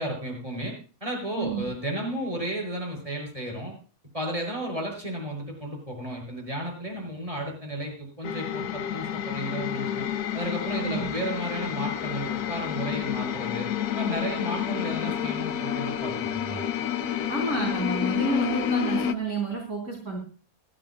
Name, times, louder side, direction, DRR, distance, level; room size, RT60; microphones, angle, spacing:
voice 1, 0.0-3.8 4.1-10.1 10.3-13.7 13.9-16.7, right 1 dB, 20° right, 0 dB, 6.5 m, -33 dB
sound 1, 8.2-19.1, left 9 dB, 85° left, 1.4 m, -29 dB
voice 2, 10.8-11.1 17.3-20.2, right 4 dB, 55° right, -1 dB, 3.8 m, -30 dB
21.0 x 15.0 x 2.3 m, 0.37 s
omnidirectional pair, 1.6 m